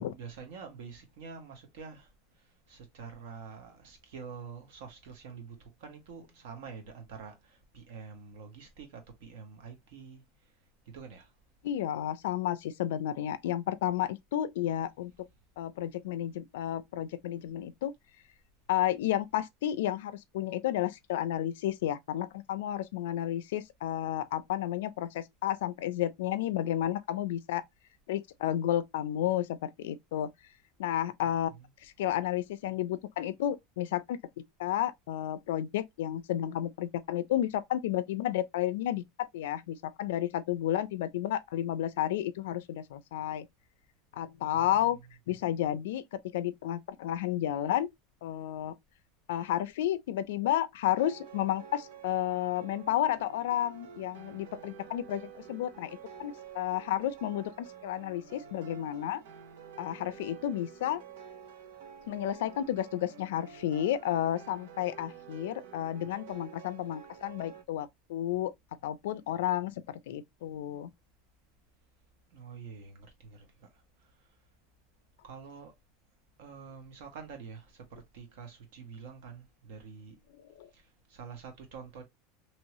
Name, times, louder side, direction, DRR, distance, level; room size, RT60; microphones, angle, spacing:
voice 1, 0.0-10.6 10.8-11.3 31.2-31.7 44.6-45.0 72.3-74.4 75.2-75.7 76.4-80.2 80.7-82.0, right 6 dB, 60° right, 1.3 m, -47 dB
voice 2, 11.6-15.1 15.6-17.9 18.7-27.6 28.1-30.3 30.8-31.5 31.8-43.5 44.1-45.0 45.3-47.9 48.2-48.7 49.3-59.2 59.8-61.0 62.1-68.5 68.8-70.9 80.3-80.7, left 12 dB, 80° left, 0.4 m, -32 dB
sound 1, 51.0-67.6, right 7 dB, 85° right, 0.8 m, -49 dB
3.0 x 2.7 x 3.0 m
supercardioid pair, 180°, 0 cm